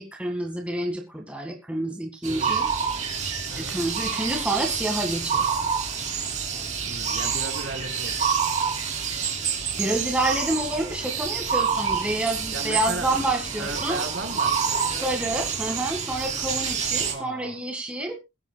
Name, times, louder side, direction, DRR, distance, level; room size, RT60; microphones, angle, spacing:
voice 1, 0.0-2.7 3.6-5.6 9.8-14.0 15.0-18.2, right 1 dB, 5° right, 2 dB, 1.9 m, -28 dB
sound 1, 2.2-17.1, right 6 dB, 35° right, 3.1 m, -27 dB
voice 2, 6.8-8.3 12.5-13.3 13.6-14.8 16.8-17.6, right 2 dB, 75° right, 1 dB, 4.4 m, -36 dB
22.0 x 8.2 x 2.3 m, 0.24 s
head